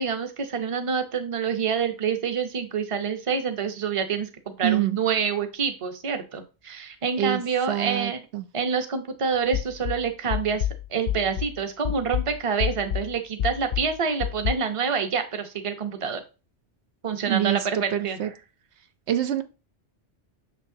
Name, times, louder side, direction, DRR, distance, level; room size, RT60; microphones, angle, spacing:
voice 1, 0.0-4.3 4.6-8.2 8.5-16.2 17.0-18.3, right 6 dB, 35° right, 7 dB, 0.8 m, -27 dB
voice 2, 4.6-5.0 7.2-7.4 7.7-8.5 17.3-18.3 19.1-19.4, right 12 dB, 80° right, 10 dB, 0.9 m, -26 dB
sound 1, 9.5-11.6 11.8-14.5, left 11 dB, 70° left, 0.8 m, -29 dB
6.3 x 6.3 x 2.7 m, 0.31 s
omnidirectional pair, 1.1 m